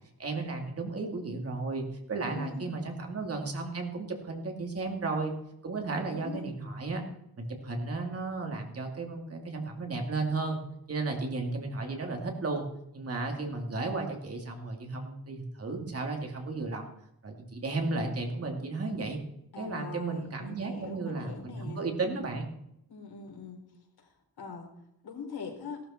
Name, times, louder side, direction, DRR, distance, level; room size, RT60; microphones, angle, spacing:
voice 1, 0.2-5.3 5.6-7.0 7.4-10.6 10.9-12.7 12.9-16.9 17.2-19.2 19.6-22.5, right 3 dB, 40° right, 2 dB, 2.6 m, -34 dB
voice 2, 2.2-2.7 6.1-6.5 19.5-21.9 22.9-23.7 24.0-24.1 24.4-24.7 25.0-25.8, left 4 dB, 80° left, 2 dB, 4.1 m, -42 dB
17.5 x 12.5 x 4.4 m, 0.80 s
wide cardioid pair, 180°, 37 cm